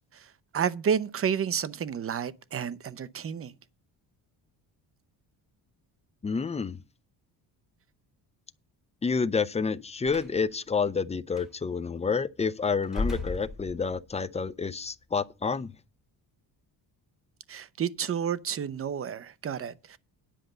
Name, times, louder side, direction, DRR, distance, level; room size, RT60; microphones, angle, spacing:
voice 1, 0.5-3.5 17.5-20.0, right 7 dB, 30° right, 0.6 m, -30 dB
voice 2, 6.2-6.8 9.0-15.7, left 5 dB, 15° left, 0.4 m, -29 dB
Slam, 10.0-10.4 11.3-11.5 12.8-14.1, left 2 dB, ahead, 3.8 m, -34 dB
10.0 x 5.2 x 7.8 m
cardioid pair, 125°, 44 cm